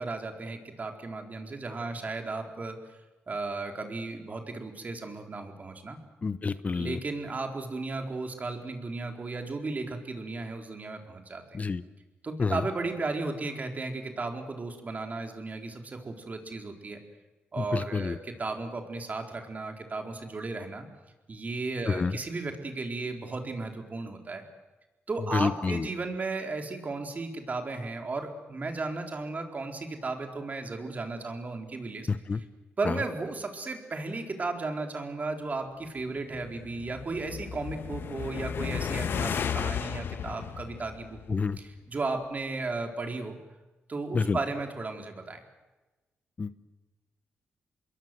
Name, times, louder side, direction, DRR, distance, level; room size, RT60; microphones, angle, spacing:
voice 1, 0.0-2.8 3.3-6.0 6.7-11.4 12.2-17.0 17.5-20.8 21.3-24.4 25.1-32.1 32.3-32.4 32.8-43.4 43.9-45.4, right 3 dB, 40° right, 4 dB, 4.4 m, -35 dB
voice 2, 6.2-7.0 11.5-11.8 12.4-12.6 17.6-18.2 21.9-22.1 25.3-25.9 32.1-32.4 32.8-33.0 41.3-41.6 44.1-44.4 46.4-46.5, left 4 dB, 40° left, 13 dB, 1.0 m, -28 dB
sound 1, 36.2-41.6, left 7 dB, 70° left, 1.3 m, -34 dB
27.0 x 22.0 x 7.9 m, 1.1 s
cardioid pair, 70°, 4 cm